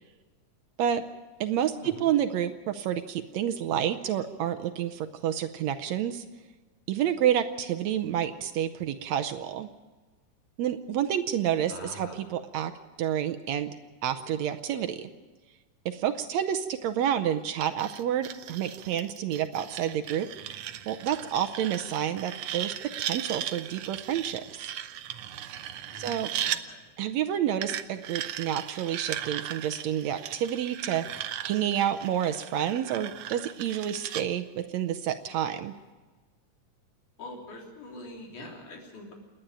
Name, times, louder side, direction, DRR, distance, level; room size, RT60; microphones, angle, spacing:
voice 1, 1.4-6.2 6.9-9.7 10.6-12.7 13.0-13.8 14.0-15.1 15.9-20.3 20.9-24.7 26.0-26.3 27.0-35.7, right 10 dB, 70° right, 10 dB, 1.8 m, -29 dB
voice 2, 11.7-12.3 25.9-26.8 37.2-39.1, left 1 dB, 75° left, 0 dB, 5.0 m, -44 dB
sound 1, 17.6-26.6 27.6-34.2, right 11 dB, 90° right, 1.2 m, -37 dB
28.5 x 10.5 x 9.0 m, 1.3 s
omnidirectional pair, 3.5 m